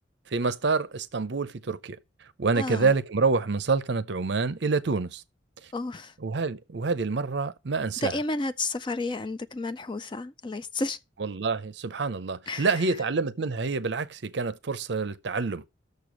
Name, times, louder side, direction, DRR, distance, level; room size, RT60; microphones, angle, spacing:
voice 1, 0.3-2.0 2.4-5.2 6.2-8.1 11.2-15.6, right 4 dB, 60° right, 0.6 m, -27 dB
voice 2, 2.5-2.9 5.7-6.1 8.0-11.0 12.5-13.0, left 2 dB, 25° left, 0.4 m, -31 dB
6.9 x 6.7 x 6.2 m
head